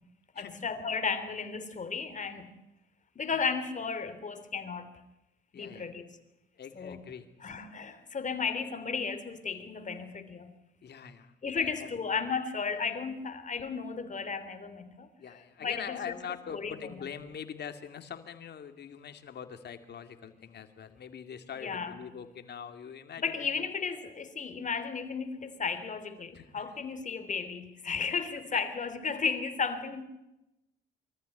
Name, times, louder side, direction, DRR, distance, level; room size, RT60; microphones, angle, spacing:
voice 1, 0.3-2.5 3.1-4.9 5.5-6.2 6.7-7.0 7.4-10.5 11.4-16.1 16.5-16.8 21.5-22.0 23.2-30.0, left 5 dB, 40° left, 10 dB, 3.2 m, -34 dB
voice 2, 5.5-5.9 6.5-7.3 10.8-11.9 15.2-23.7 26.3-26.7 28.5-28.6, left 7 dB, 55° left, 7 dB, 2.5 m, -43 dB
24.0 x 14.0 x 9.3 m, 0.93 s
cardioid pair, 90°, 20 cm